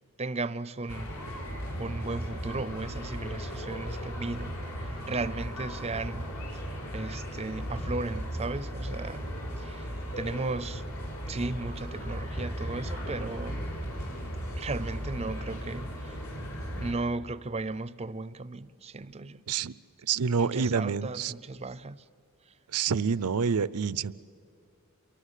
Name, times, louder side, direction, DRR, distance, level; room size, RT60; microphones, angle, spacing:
voice 1, 0.2-1.1 1.8-9.3 9.6-9.9 10.2-10.8 11.3-13.7 14.6-16.2 16.7-19.4 20.4-22.1, right 3 dB, 30° right, 0.6 m, -36 dB
sound 1, 0.9-16.9, equal, 70° left, 5.7 m, -36 dB
voice 2, 20.0-21.3 22.7-24.1, right 6 dB, 85° right, 0.6 m, -27 dB
28.0 x 23.0 x 8.3 m
head